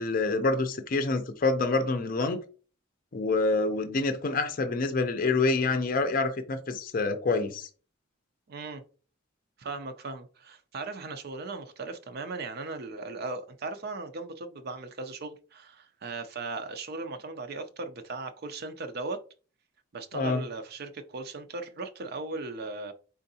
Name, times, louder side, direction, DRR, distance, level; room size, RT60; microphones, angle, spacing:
voice 1, 0.0-2.4 3.1-7.7 20.1-20.4, left 3 dB, 45° left, 0.5 m, -27 dB
voice 2, 8.5-8.8 9.6-19.2 19.9-22.9, right 3 dB, 50° right, 0.5 m, -37 dB
4.4 x 3.7 x 2.7 m
head